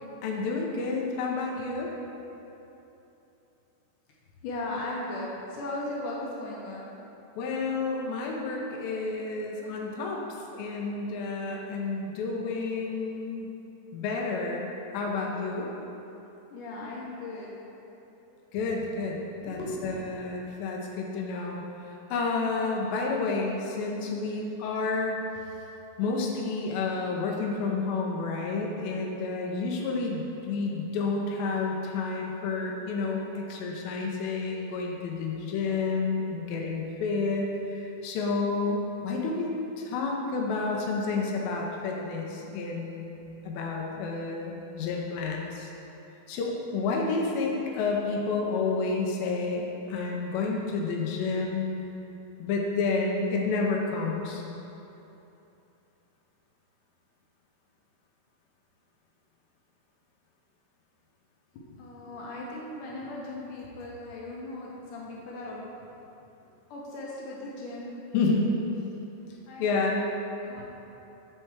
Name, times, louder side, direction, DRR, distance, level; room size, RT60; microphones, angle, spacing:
voice 1, 0.2-1.9 7.4-10.2 10.5-13.5 13.9-14.7 14.9-15.7 18.5-19.2 19.4-21.6 22.1-25.2 26.0-39.5 39.8-45.7 46.3-51.7 52.4-54.4 68.1-68.6 69.6-70.1, left 3 dB, 90° left, -1 dB, 2.5 m, -30 dB
voice 2, 4.4-6.8 16.5-17.5 18.3-18.4 19.5-20.3 61.5-65.6 66.7-67.9 69.5-70.6, left 2 dB, 75° left, -4 dB, 2.1 m, -37 dB
7.6 x 4.5 x 4.6 m, 3.0 s
omnidirectional pair, 4.0 m